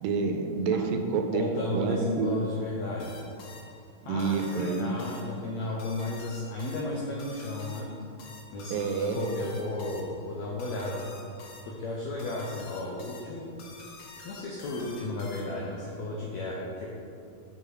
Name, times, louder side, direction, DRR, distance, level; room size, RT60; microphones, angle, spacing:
voice 1, 0.0-1.4 1.7-2.3 4.0-4.9 8.7-9.2, right 5 dB, 85° right, 4 dB, 2.2 m, -28 dB
voice 2, 1.3-3.2 4.0-7.9 8.5-11.1 11.7-13.5 14.2-16.9, left 2 dB, 90° left, -3 dB, 1.5 m, -34 dB
sound 1, 3.0-15.8, left 3 dB, 70° left, 2.0 m, -49 dB
6.5 x 5.7 x 4.6 m, 2.6 s
omnidirectional pair, 4.0 m